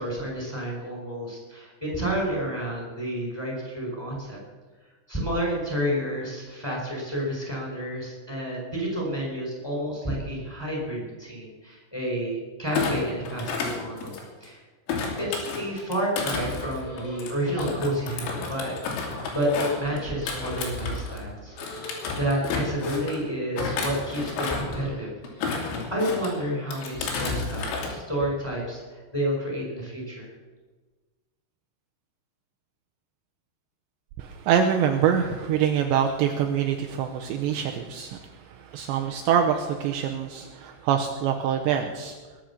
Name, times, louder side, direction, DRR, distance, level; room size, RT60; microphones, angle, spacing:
voice 1, 0.0-4.4 5.1-14.1 14.4-14.6 15.2-21.5 21.8-25.1 25.5-30.3, equal, 5° left, -1 dB, 4.5 m, -30 dB
Thump thud, 12.7-14.5 14.9-21.2 21.6-23.2 23.6-24.8 25.2-26.3 26.7-27.9 28.2-28.6, left 4 dB, 90° left, 5.2 m, -31 dB
sound 1, 16.8-17.3 17.6-19.3 19.6-22.7 23.5-27.3, left 2 dB, 35° left, 3.1 m, -43 dB
voice 2, 34.2-42.2, right 8 dB, 80° right, 4 dB, 2.8 m, -25 dB
21.5 x 7.7 x 7.2 m, 1.3 s
omnidirectional pair, 5.6 m